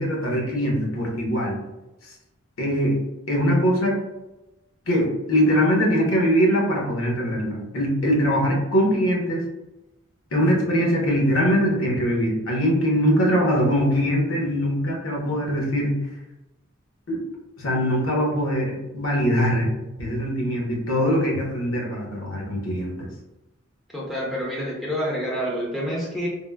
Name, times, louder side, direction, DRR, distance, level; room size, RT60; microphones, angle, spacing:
voice 1, 0.0-1.6 2.6-3.0 3.3-3.9 4.9-9.4 10.3-16.0 17.1-17.2 17.6-19.7 20.0-23.1, equal, 70° left, -2 dB, 0.8 m, -22 dB
voice 2, 23.9-26.3, equal, ahead, -6 dB, 0.5 m, -28 dB
3.6 x 2.0 x 2.2 m, 1.0 s
head